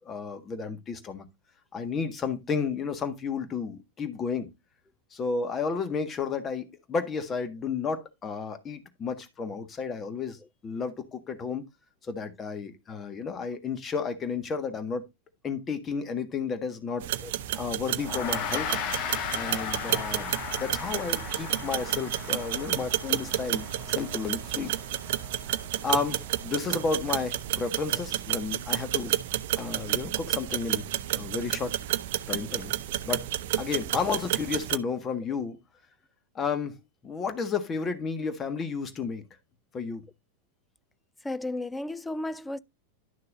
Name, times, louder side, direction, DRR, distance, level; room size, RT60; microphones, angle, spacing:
voice 1, 0.1-1.2 1.7-4.5 5.1-10.4 10.6-11.7 12.0-15.1 15.4-17.1 17.6-18.8 19.3-20.3 20.6-24.7 25.8-29.1 29.6-31.8 32.3-32.7 33.0-33.3 33.6-35.6 36.3-39.2 39.7-40.0, left 5 dB, 25° left, 1.6 m, -32 dB
sound 1, 17.0-34.8, right 13 dB, 55° right, 0.6 m, -31 dB
Gong, 18.0-27.5, left 9 dB, 40° left, 1.1 m, -38 dB
voice 2, 41.2-42.6, left 2 dB, 5° left, 0.5 m, -34 dB
11.5 x 6.5 x 2.6 m
figure-of-eight pair, 90°, 0 cm